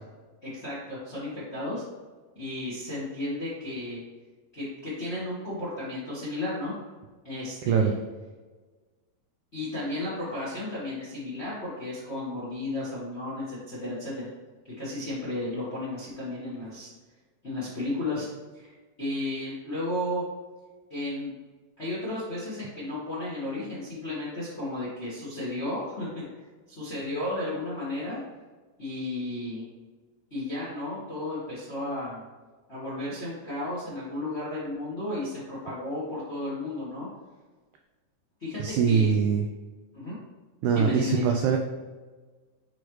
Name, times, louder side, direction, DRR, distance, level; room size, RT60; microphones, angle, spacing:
voice 1, 0.4-1.8 2.3-4.0 4.5-6.7 7.2-7.9 9.5-14.3 14.8-16.9 17.4-18.3 18.5-20.2 20.9-21.3 21.8-26.2 26.7-28.2 28.8-29.6 30.3-32.2 32.7-37.1 38.4-39.1 39.9-40.1 40.7-41.3, left 2 dB, 45° left, -8 dB, 0.8 m, -33 dB
voice 2, 7.6-7.9 38.6-39.5 40.6-41.6, right 6 dB, 85° right, 3 dB, 1.7 m, -23 dB
6.4 x 4.9 x 3.1 m, 1.3 s
omnidirectional pair, 3.9 m